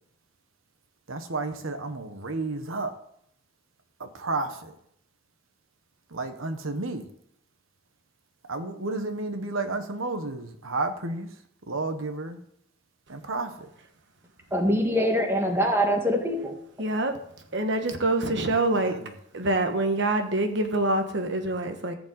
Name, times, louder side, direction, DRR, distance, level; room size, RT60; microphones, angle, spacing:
voice 1, 1.1-2.9 4.0-4.7 6.1-7.1 8.5-11.3 11.7-12.4 13.1-13.5 18.9-19.1, right 3 dB, 70° right, 7 dB, 1.2 m, -31 dB
voice 2, 14.5-16.6, equal, 10° right, 2 dB, 1.6 m, -24 dB
voice 3, 16.8-17.1 17.5-18.9 19.3-21.9, right 2 dB, 55° right, 6 dB, 1.3 m, -25 dB
14.5 x 5.2 x 8.1 m, 0.70 s
head